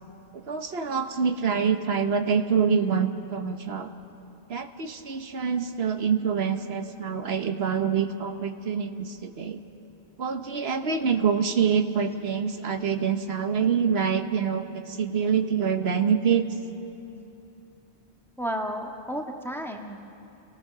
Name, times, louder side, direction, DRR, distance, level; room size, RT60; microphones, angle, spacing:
voice 1, 0.3-3.9 4.5-9.6 10.2-16.5, right 6 dB, 80° right, 7 dB, 1.3 m, -26 dB
voice 2, 18.4-20.1, equal, ahead, 2 dB, 1.5 m, -32 dB
29.0 x 18.5 x 6.7 m, 2.9 s
omnidirectional pair, 1.0 m